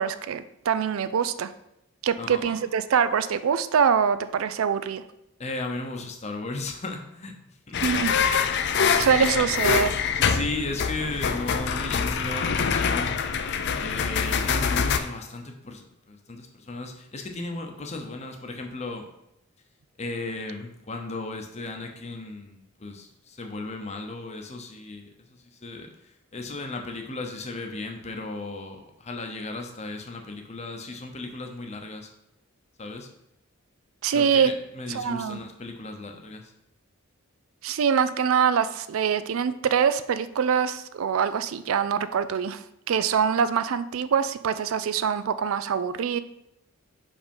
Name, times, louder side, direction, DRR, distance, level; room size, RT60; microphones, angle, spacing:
voice 1, 0.0-1.5 2.0-5.0 7.8-8.1 9.0-9.9 34.0-34.5 34.9-35.4 37.6-46.2, right 7 dB, 70° right, 13 dB, 0.4 m, -24 dB
voice 2, 2.2-2.6 5.4-7.3 7.7-7.8 8.9-9.5 10.2-13.2 13.8-19.1 20.0-25.9 26.3-32.1 32.8-33.1 34.1-36.5, left 2 dB, 30° left, 4 dB, 0.8 m, -35 dB
sound 1, 7.7-15.0, left 6 dB, 50° left, 0.5 m, -25 dB
5.1 x 4.9 x 5.4 m, 0.83 s
head